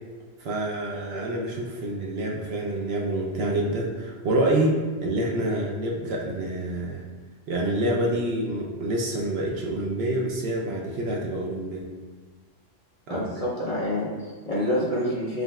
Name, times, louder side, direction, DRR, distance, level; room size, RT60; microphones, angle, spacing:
voice 1, 0.4-4.8 5.0-7.0 7.5-11.9 13.1-13.3, right 1 dB, 65° right, -2 dB, 0.7 m, -27 dB
voice 2, 13.1-15.4, left 1 dB, 35° left, -7 dB, 0.7 m, -27 dB
5.1 x 3.1 x 2.3 m, 1.5 s
omnidirectional pair, 1.2 m